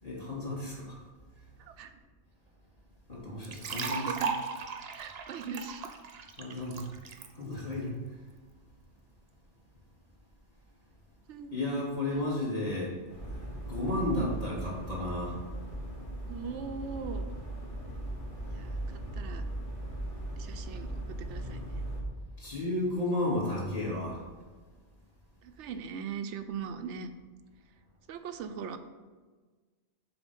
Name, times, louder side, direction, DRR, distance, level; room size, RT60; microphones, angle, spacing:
voice 1, 0.0-1.0 3.1-4.1 6.4-6.9 7.3-8.0 11.5-12.9 13.3-13.4 13.7-15.4 22.4-24.2, left 1 dB, 35° left, -6 dB, 2.3 m, -33 dB
voice 2, 1.6-1.9 3.9-4.3 4.9-5.9 11.3-11.5 16.3-17.3 18.5-19.4 20.4-20.9 21.3-21.6 25.4-27.1 28.1-28.8, right 6 dB, 90° right, 8 dB, 0.9 m, -40 dB
sound 1, 3.4-7.3, right 5 dB, 65° right, 0.9 m, -36 dB
sound 2, 13.1-22.0, right 1 dB, 65° left, 2.3 m, -38 dB
7.0 x 4.4 x 5.4 m, 1.4 s
omnidirectional pair, 1.2 m